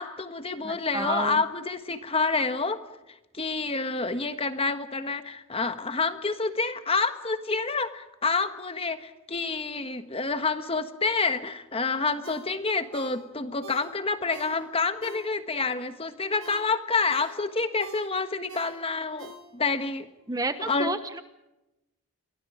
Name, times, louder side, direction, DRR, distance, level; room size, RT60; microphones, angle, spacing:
voice 1, 0.0-2.8 3.3-20.1 20.7-21.0, left 4 dB, 25° left, 9 dB, 1.5 m, -28 dB
voice 2, 0.6-1.4 20.3-21.2, right 2 dB, 15° right, 10 dB, 1.0 m, -31 dB
Ringtone, 12.2-15.7 16.1-19.9 20.2-20.3, right 2 dB, 85° right, 4.2 m, -47 dB
29.5 x 24.0 x 5.1 m, 0.94 s
head